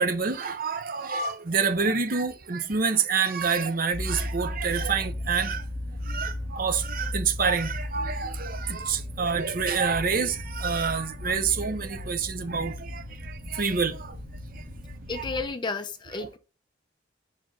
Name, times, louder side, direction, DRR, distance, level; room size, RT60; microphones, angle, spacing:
voice 1, 0.0-5.7 6.0-14.2 14.5-14.6 15.1-15.2, right 5 dB, 50° right, 0.7 m, -27 dB
sound 1, 3.9-15.5, left 1 dB, 30° right, 2.1 m, -36 dB
voice 2, 15.1-16.4, left 3 dB, 25° left, 0.6 m, -32 dB
6.0 x 4.9 x 3.8 m
head